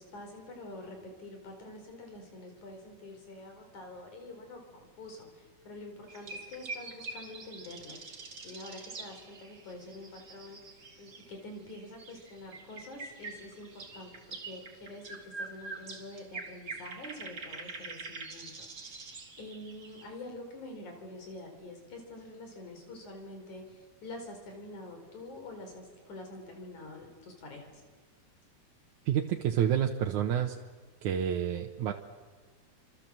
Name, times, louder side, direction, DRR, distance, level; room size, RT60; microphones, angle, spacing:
voice 1, 0.0-8.0 8.4-10.6 11.0-27.8, left 2 dB, 70° left, 4 dB, 6.1 m, -46 dB
sound 1, 6.1-11.4 11.7-20.1, right 3 dB, 35° right, 2.7 m, -45 dB
voice 2, 29.1-30.6 31.0-31.9, right 9 dB, 75° right, 3 dB, 2.5 m, -29 dB
30.0 x 26.5 x 7.6 m, 1.5 s
omnidirectional pair, 3.5 m